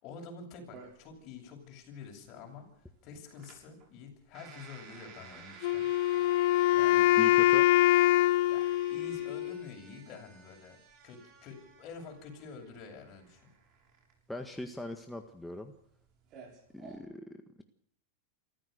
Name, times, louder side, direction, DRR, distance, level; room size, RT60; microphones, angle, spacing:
voice 1, 0.0-5.9 6.7-7.1 8.5-10.8 11.0-13.4, left 5 dB, 45° left, 2 dB, 8.0 m, -48 dB
sound 1, 0.7-17.0, right 6 dB, 40° right, 6.8 m, -54 dB
Wind instrument woodwind instrument, 5.6-9.7, left 15 dB, 60° left, 0.9 m, -24 dB
voice 2, 7.2-7.6 14.3-15.7 16.7-17.6, left 1 dB, 5° left, 4 dB, 1.7 m, -41 dB
26.0 x 15.0 x 6.8 m, 0.65 s
supercardioid pair, 130°, 0 cm